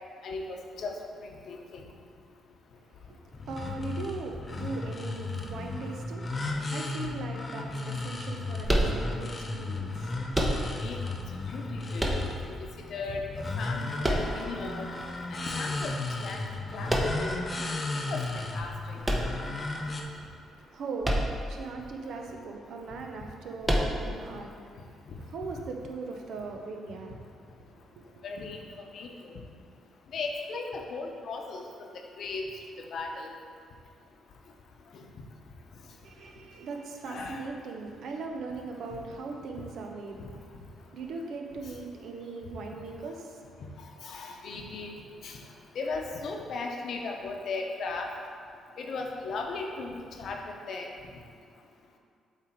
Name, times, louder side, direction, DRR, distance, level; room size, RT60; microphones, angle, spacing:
voice 1, 0.2-0.9 1.2-1.8 10.8-12.1 12.6-13.2 13.6-14.9 15.5-16.4 16.7-17.4 18.0-19.0 24.1-24.2 28.2-28.6 28.9-29.4 30.1-31.6 32.2-32.5 32.9-33.3 34.9-35.0 37.1-37.4 38.9-39.0 44.0-44.9 45.2-45.4 45.7-48.1 48.8-50.9, left 3 dB, 65° left, 2 dB, 0.8 m, -37 dB
voice 2, 2.8-10.2 19.9-28.2 35.9-43.6, right 4 dB, 70° right, 2 dB, 0.7 m, -40 dB
sound 1, 3.3-20.0, left 3 dB, 30° left, 0.7 m, -35 dB
sound 2, 8.6-9.4 10.3-11.0 12.0-12.7 14.0-14.8 16.9-17.4 19.0-19.9 21.0-21.6 21.9-22.0 23.6-24.3, right 1 dB, 15° right, 0.8 m, -28 dB
7.5 x 3.3 x 4.5 m, 2.3 s
cardioid pair, 90°, 0 cm